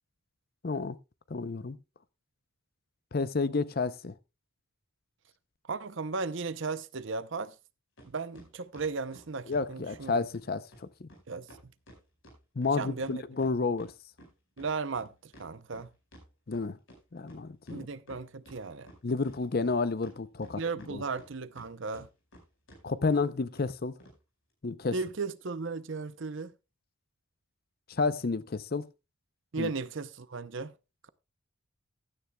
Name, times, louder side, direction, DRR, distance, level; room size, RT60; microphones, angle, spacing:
voice 1, 0.6-1.0 1.3-1.8 3.1-4.1 9.5-11.1 12.6-13.9 16.5-16.8 17.1-17.9 19.0-20.6 20.9-21.0 22.8-23.9 24.6-24.9 27.9-28.9 29.6-29.7, left 4 dB, 45° left, 0.6 m, -30 dB
voice 2, 5.7-7.5 8.0-10.2 11.3-11.7 12.8-13.2 14.6-15.9 17.7-18.9 20.6-22.1 24.9-26.5 29.5-30.7, right 4 dB, 55° right, 0.6 m, -36 dB
sound 1, 8.0-8.1 8.4-10.1 10.3-10.4 10.7-10.8 11.1-11.2 11.5-13.9 14.2-17.0 17.3-17.4 17.7-18.6 18.9-19.8 20.0-21.7 21.9-22.4 22.7-22.8 23.1-23.2 23.6-23.7 24.0-24.2, equal, 60° left, 4.9 m, -53 dB
15.5 x 10.0 x 2.2 m
head